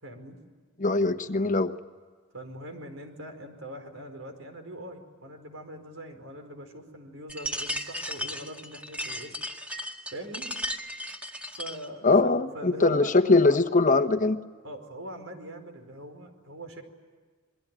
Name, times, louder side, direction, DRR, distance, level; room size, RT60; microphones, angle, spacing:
voice 1, 0.0-0.4 2.3-9.4 10.1-10.5 11.6-13.6 14.6-16.8, right 1 dB, 75° right, 4.9 m, -42 dB
voice 2, 0.8-1.7 12.0-14.4, left 3 dB, 40° left, 1.2 m, -22 dB
sound 1, 7.3-11.9, equal, 5° right, 2.1 m, -35 dB
28.0 x 22.5 x 9.1 m
head